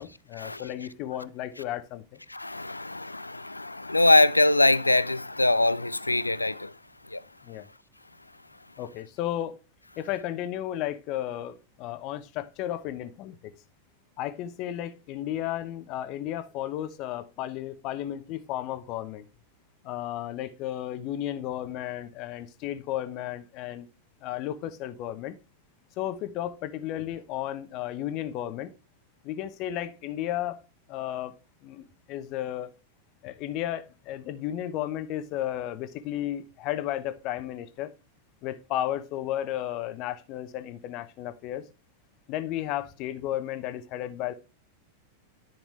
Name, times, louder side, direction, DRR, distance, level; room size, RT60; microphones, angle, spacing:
voice 1, 0.0-2.0 7.4-7.7 8.8-9.6 10.0-13.5 14.2-19.2 19.8-23.9 24.2-25.4 26.0-28.7 29.2-30.6 30.9-31.3 31.6-32.7 33.2-37.9 38.4-41.6 42.3-44.3, left 12 dB, 40° left, 0.9 m, -33 dB
voice 2, 2.3-6.7 7.1-7.2, left 2 dB, 85° left, 0.4 m, -23 dB
10.0 x 5.9 x 3.3 m
figure-of-eight pair, 90°, 0 cm